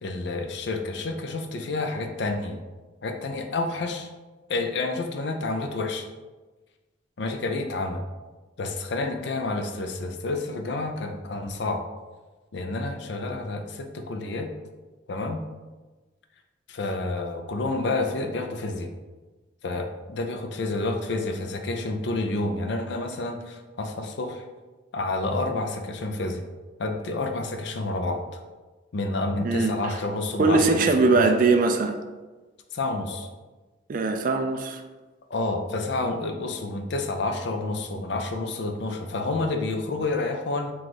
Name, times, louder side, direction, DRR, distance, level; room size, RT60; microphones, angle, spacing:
voice 1, 0.0-2.6 3.0-4.1 4.5-6.1 7.2-8.0 8.6-11.8 12.5-14.5 15.1-15.4 16.7-18.9 19.6-24.4 24.9-26.4 26.8-28.2 28.9-31.3 32.7-33.3 35.3-40.7, left 2 dB, 65° left, 5 dB, 0.5 m, -29 dB
voice 2, 29.4-29.9 30.4-32.0 33.9-34.8, right 3 dB, 45° right, 5 dB, 0.4 m, -21 dB
4.7 x 2.4 x 4.0 m, 1.2 s
head